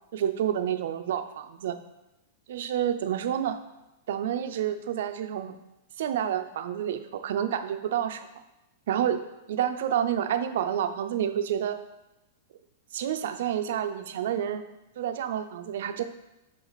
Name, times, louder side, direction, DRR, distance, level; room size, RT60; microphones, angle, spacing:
voice 1, 0.1-1.8 2.5-3.6 4.1-5.6 6.0-8.3 8.9-9.2 9.5-11.8 12.9-14.6 15.0-16.0, right 10 dB, 70° right, 9 dB, 0.5 m, -29 dB
5.5 x 5.0 x 4.0 m, 0.96 s
hypercardioid pair, 120°, 0 cm